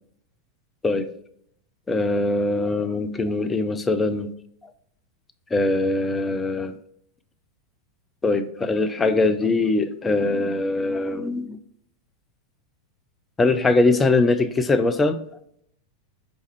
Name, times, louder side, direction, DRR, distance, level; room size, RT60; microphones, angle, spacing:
voice 1, 1.9-4.3 5.5-6.8 8.2-11.6 13.4-15.2, left 3 dB, 15° left, 10 dB, 0.3 m, -22 dB
5.1 x 2.3 x 3.1 m, 0.70 s
figure-of-eight pair, 90°, 0 cm